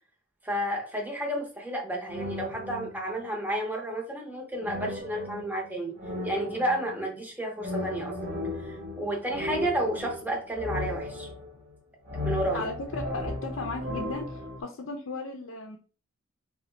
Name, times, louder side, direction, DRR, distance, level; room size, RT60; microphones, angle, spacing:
voice 1, 0.4-5.9 6.2-8.2 8.6-11.3 12.2-12.7, right 1 dB, 10° right, 0 dB, 0.7 m, -31 dB
sound 1, 2.1-3.3 4.6-7.1 7.6-11.7 12.0-14.6, left 2 dB, 50° right, 1.1 m, -35 dB
voice 2, 12.5-15.8, left 3 dB, 70° left, 2 dB, 0.5 m, -36 dB
3.8 x 2.2 x 3.2 m, 0.37 s
head